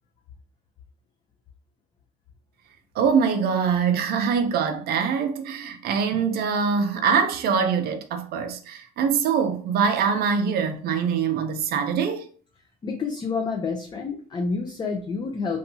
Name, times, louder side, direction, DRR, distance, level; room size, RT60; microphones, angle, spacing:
voice 1, 3.0-12.2, right 6 dB, 50° right, 0.5 m, -23 dB
voice 2, 12.8-15.6, left 4 dB, 20° left, 0.4 m, -28 dB
2.7 x 2.3 x 2.6 m
supercardioid pair, 105°, 20 cm